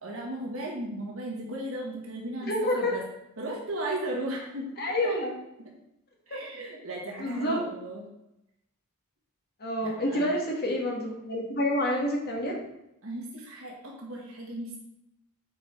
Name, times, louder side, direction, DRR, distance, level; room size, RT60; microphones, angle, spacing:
voice 1, 0.0-3.1 3.4-4.7 5.0-5.1 5.6-5.7 6.3-8.1 9.8-10.3 13.0-14.8, right 1 dB, 70° right, -2 dB, 2.0 m, -36 dB
voice 2, 2.5-2.9 4.8-5.4 6.3-6.4 7.2-7.6 9.6-12.6, left 1 dB, 50° left, -1 dB, 1.8 m, -28 dB
7.6 x 4.9 x 4.4 m, 0.87 s
head